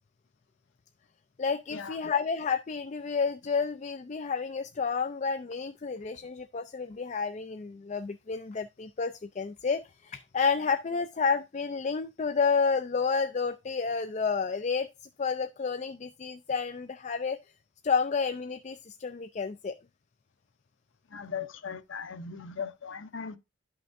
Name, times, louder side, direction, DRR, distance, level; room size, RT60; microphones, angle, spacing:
voice 1, 1.4-14.9 15.2-17.4 17.8-19.8, left 5 dB, 35° left, 0.4 m, -30 dB
voice 2, 21.1-23.4, left 6 dB, 80° left, 0.7 m, -38 dB
11.5 x 5.9 x 2.6 m
head